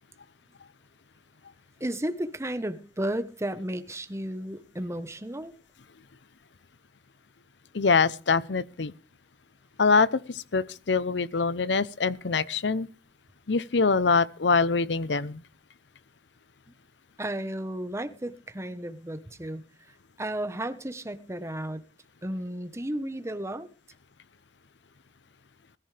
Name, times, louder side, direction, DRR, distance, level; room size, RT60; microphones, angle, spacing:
voice 1, 1.8-5.5 17.2-21.8 22.2-23.7, right 1 dB, 15° right, 1.1 m, -33 dB
voice 2, 7.7-8.9 9.8-12.9 13.5-15.4, left 4 dB, 75° left, 0.8 m, -24 dB
20.5 x 14.0 x 3.4 m
head